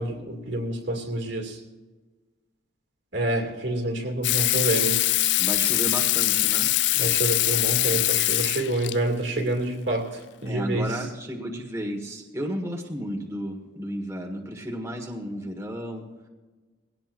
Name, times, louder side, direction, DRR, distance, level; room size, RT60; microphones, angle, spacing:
voice 1, 0.0-1.6 3.1-5.0 7.0-11.0, right 1 dB, 65° right, 3 dB, 2.4 m, -28 dB
Water tap faucet / Sink (filling or washing), 4.2-9.0 10.5-10.6, left 17 dB, 60° left, 0.3 m, -23 dB
voice 2, 5.4-6.7 10.4-16.0, equal, 15° right, 0 dB, 1.6 m, -33 dB
20.5 x 17.0 x 2.6 m, 1.3 s
head